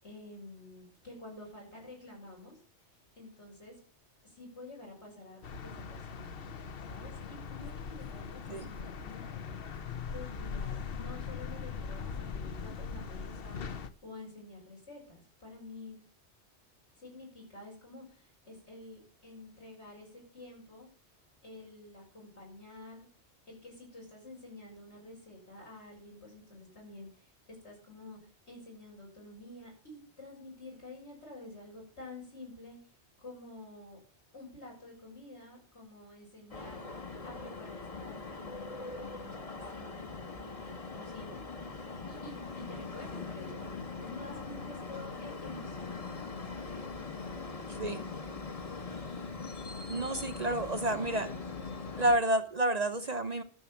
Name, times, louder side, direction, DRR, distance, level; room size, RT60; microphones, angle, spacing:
voice 1, 0.0-2.6 3.2-3.7 4.2-6.3 6.8-9.6 10.1-16.0 17.0-20.9 21.4-23.1 23.5-32.8 33.2-34.0 34.3-41.7 42.1-43.7 44.0-46.2 46.5-46.7 47.0-48.1, left 2 dB, 80° left, -2 dB, 6.9 m, -50 dB
sound 1, 5.4-13.9, left 6 dB, 60° left, 1.0 m, -40 dB
sound 2, 36.5-52.2, left 4 dB, 35° left, 1.2 m, -41 dB
voice 2, 49.9-51.3 52.0-53.4, right 1 dB, 40° right, 9 dB, 0.8 m, -30 dB
12.5 x 7.2 x 7.1 m, 0.43 s
omnidirectional pair, 1.1 m